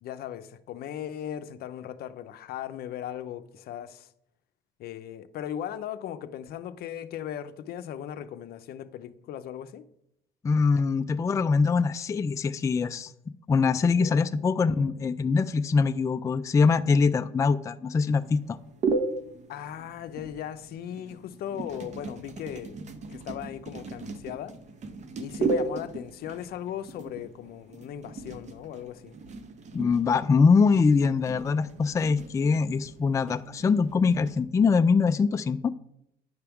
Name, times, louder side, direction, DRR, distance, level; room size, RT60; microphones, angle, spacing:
voice 1, 0.0-4.1 4.8-9.9 13.9-14.3 14.7-14.8 19.5-22.8 23.1-24.6 25.2-29.2, left 10 dB, 65° left, 0.6 m, -38 dB
voice 2, 10.4-13.1 13.5-18.6 29.7-35.7, left 5 dB, 20° left, 0.3 m, -23 dB
sound 1, 18.0-34.4, right 3 dB, 45° right, 0.8 m, -36 dB
9.5 x 5.8 x 3.5 m
cardioid pair, 110°, 17 cm